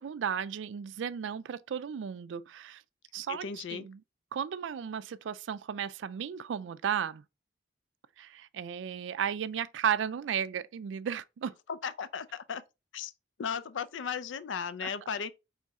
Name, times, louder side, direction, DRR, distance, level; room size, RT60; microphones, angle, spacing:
voice 1, 0.0-2.8 3.1-4.0 4.3-7.2 8.2-11.5 14.8-14.9, right 8 dB, 85° right, 0.3 m, -34 dB
voice 2, 3.3-3.9 11.7-12.6 12.9-13.1 13.4-15.3, left 6 dB, 90° left, 0.4 m, -36 dB
3.6 x 3.2 x 4.0 m
head